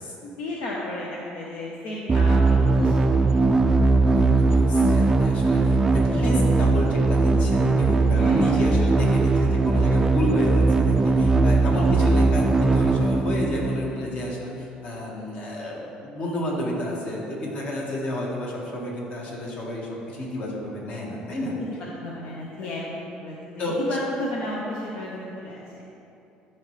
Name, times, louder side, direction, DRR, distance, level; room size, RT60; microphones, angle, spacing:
voice 1, 0.2-3.4 8.1-8.5 11.9-12.0 21.9-25.8, left 1 dB, 70° left, -4 dB, 0.9 m, -33 dB
sound 1, 2.1-14.0, right 3 dB, 20° right, 0.4 m, -20 dB
voice 2, 3.8-21.5 22.6-22.7 23.6-23.7, left 1 dB, 50° left, -3 dB, 1.7 m, -31 dB
12.5 x 4.4 x 3.2 m, 2.7 s
cardioid pair, 125°, 3 cm